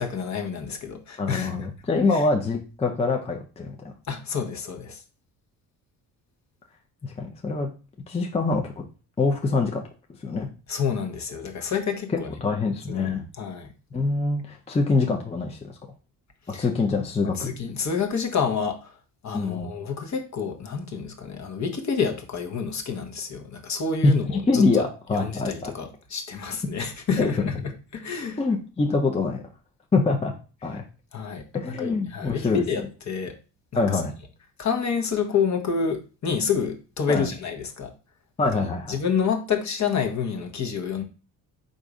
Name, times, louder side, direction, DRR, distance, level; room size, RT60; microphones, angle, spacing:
voice 1, 0.0-1.7 2.1-2.2 4.1-5.0 10.7-12.3 12.9-13.7 16.5-16.7 17.4-18.9 19.2-24.6 25.1-28.4 31.1-33.4 33.7-34.0 34.6-37.9 38.5-38.6 38.9-41.0, left 6 dB, 45° left, 1.0 m, -28 dB
voice 2, 1.2-3.9 7.0-7.7 8.1-8.8 9.2-9.8 10.2-10.5 12.4-13.2 13.9-15.8 16.6-17.5 19.3-19.7 24.0-25.7 27.2-27.5 28.4-29.4 29.9-30.3 30.6-30.8 31.5-32.6 33.8-34.1 37.1-37.3 38.4-39.0, left 3 dB, 15° left, 0.6 m, -24 dB
3.9 x 2.6 x 4.8 m
cardioid pair, 110°, 39 cm